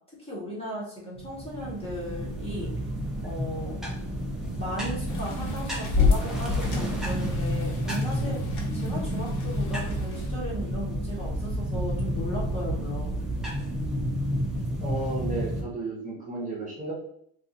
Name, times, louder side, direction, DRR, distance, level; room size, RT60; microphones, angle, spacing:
voice 1, 0.2-2.7 3.2-3.8 4.6-13.1, equal, 15° left, -6 dB, 1.0 m, -36 dB
sound 1, 1.2-15.6, equal, ahead, 0.6 m, -30 dB
sound 2, 5.1-10.3, left 5 dB, 45° left, 1.0 m, -30 dB
voice 2, 14.8-16.9, right 2 dB, 20° right, -4 dB, 0.9 m, -33 dB
2.6 x 2.4 x 3.8 m, 0.69 s
cardioid pair, 140°, 42 cm